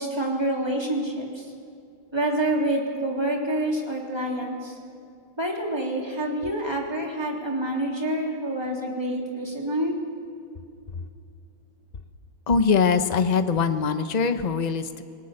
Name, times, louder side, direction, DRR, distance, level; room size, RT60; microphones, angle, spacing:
voice 1, 0.0-1.5 2.1-4.8 5.4-9.9, right 1 dB, 10° right, -1 dB, 3.3 m, -27 dB
voice 2, 12.5-15.0, left 5 dB, 40° left, 9 dB, 0.6 m, -22 dB
28.5 x 19.0 x 6.7 m, 2.4 s
omnidirectional pair, 2.2 m